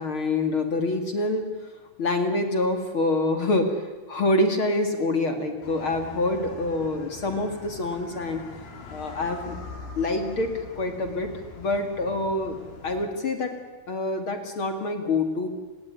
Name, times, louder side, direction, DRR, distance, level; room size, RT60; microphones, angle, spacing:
voice 1, 0.0-1.7 2.0-8.4 8.9-9.6 10.0-11.3 11.6-12.6 12.8-13.5 13.9-15.5, left 2 dB, 40° left, 6 dB, 2.3 m, -26 dB
sound 1, 5.6-13.1, left 4 dB, 90° left, 5.7 m, -43 dB
30.0 x 19.5 x 9.7 m, 1.3 s
omnidirectional pair, 4.5 m